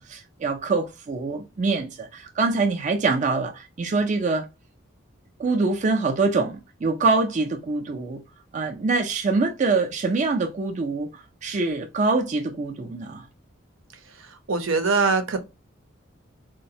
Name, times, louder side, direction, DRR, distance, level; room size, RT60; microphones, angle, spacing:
voice 1, 0.0-4.5 5.4-8.2 8.5-13.3, right 3 dB, 35° right, 0.4 m, -24 dB
voice 2, 14.5-15.4, right 4 dB, 80° right, 0.7 m, -22 dB
3.9 x 2.1 x 2.6 m
head